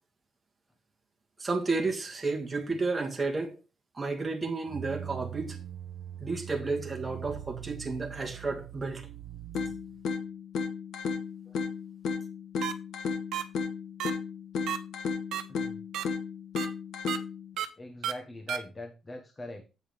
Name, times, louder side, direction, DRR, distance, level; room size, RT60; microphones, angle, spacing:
voice 1, 1.4-3.6 3.9-5.6 6.2-9.1, right 3 dB, 15° right, 1.8 m, -32 dB
sound 1, 4.7-10.1, right 10 dB, 55° right, 0.5 m, -42 dB
sound 2, 9.5-17.5, left 5 dB, 65° left, 1.3 m, -34 dB
sound 3, 12.6-12.7 13.3-13.4 14.0-14.1 14.7-14.8 15.3-15.4 15.9-16.0 16.6-16.7 17.1-17.2 17.6-17.7 18.0-18.1 18.5-18.6, right 10 dB, 85° right, 0.9 m, -31 dB
voice 2, 15.5-15.8 17.8-19.6, left 1 dB, 20° left, 1.0 m, -42 dB
8.4 x 5.4 x 4.9 m
cardioid pair, 170°, 0 cm